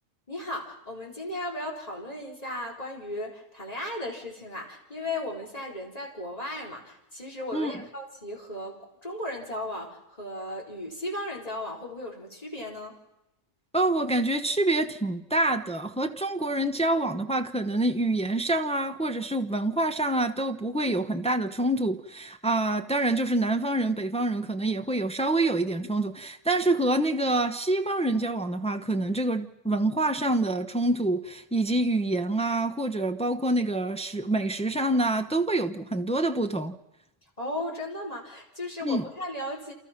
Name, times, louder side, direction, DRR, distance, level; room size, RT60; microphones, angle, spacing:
voice 1, 0.3-13.0 37.4-39.7, left 1 dB, 30° left, 4.2 m, -36 dB
voice 2, 13.7-36.8 38.8-39.1, right 2 dB, 5° left, 0.9 m, -26 dB
29.0 x 27.5 x 5.9 m
omnidirectional pair, 1.4 m